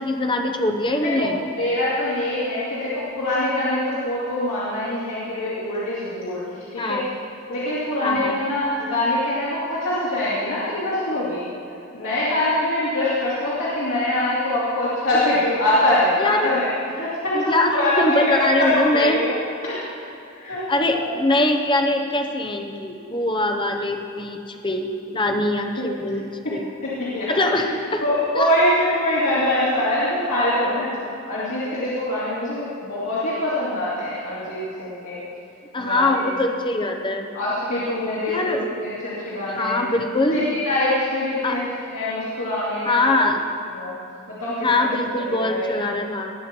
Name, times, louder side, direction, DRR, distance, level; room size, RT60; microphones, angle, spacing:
voice 1, 0.0-1.4 6.8-7.1 8.0-8.4 16.2-16.5 17.3-19.2 20.7-26.2 26.5-26.6 27.3-28.0 28.3-28.5 35.7-37.3 38.3-38.6 39.5-40.4 41.4-41.6 42.8-43.4 44.6-46.3, left 2 dB, 25° left, 4 dB, 0.9 m, -22 dB
voice 2, 1.0-6.5 6.7-7.0 7.5-11.5 11.9-19.3 19.6-19.8 20.3-20.6 20.9-21.1 25.8-25.9 26.4-27.4 28.0-30.9 31.3-35.2 35.8-36.3 37.3-39.8 40.3-43.2 43.7-43.9 44.3-44.9 45.2-45.7, left 1 dB, 85° left, -10 dB, 2.8 m, -24 dB
19.5 x 7.0 x 4.5 m, 2.8 s
head